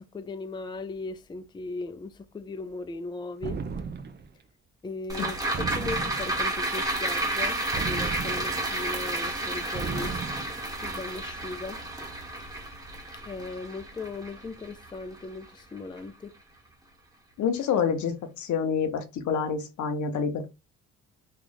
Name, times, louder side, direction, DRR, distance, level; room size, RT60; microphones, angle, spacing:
voice 1, 0.0-3.6 4.8-10.2 10.8-11.8 13.2-16.3, left 3 dB, 15° left, 0.4 m, -38 dB
sound 1, 3.4-4.3 5.5-6.5 7.7-8.8 9.7-10.6, right 5 dB, 35° right, 0.6 m, -35 dB
sound 2, 5.1-15.6 16.0-16.1, right 2 dB, 10° right, 1.3 m, -31 dB
voice 2, 17.4-20.5, left 6 dB, 70° left, 0.8 m, -28 dB
3.1 x 2.4 x 3.9 m
cardioid pair, 90°, 30 cm